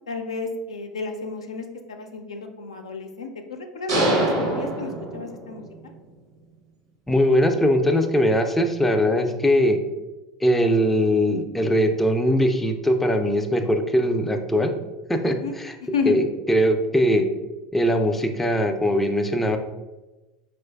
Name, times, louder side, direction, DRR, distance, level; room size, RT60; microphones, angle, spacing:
voice 1, 0.1-5.6 15.4-15.5 15.8-16.2, left 4 dB, 85° left, 4 dB, 0.3 m, -31 dB
sound 1, 3.9-5.7, right 1 dB, 80° right, 0.8 m, -24 dB
voice 2, 7.1-9.8 10.4-14.7 15.1-15.7 16.1-16.2 16.5-17.3 17.7-19.6, equal, 5° left, 5 dB, 0.3 m, -21 dB
4.3 x 2.4 x 2.3 m, 1.1 s
hypercardioid pair, 80°, 3 cm